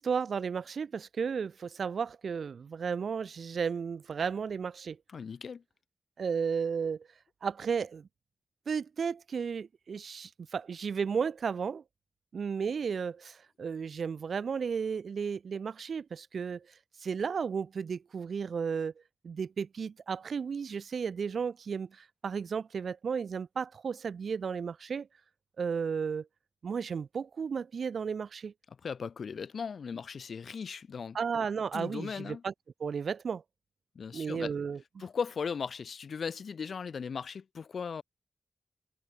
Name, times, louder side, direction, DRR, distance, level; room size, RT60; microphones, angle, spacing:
voice 1, 0.0-5.0 6.2-7.1 7.4-8.1 8.7-11.8 12.3-16.6 17.0-18.9 19.2-25.1 25.6-26.3 26.6-28.5 31.1-32.5 32.8-33.4 34.1-35.0, right 6 dB, 65° right, 5.0 m, -34 dB
voice 2, 5.1-5.6 28.8-31.2 31.7-32.4 34.0-34.5 35.0-38.0, left 6 dB, 65° left, 2.5 m, -37 dB
wide cardioid pair, 165°, 0 cm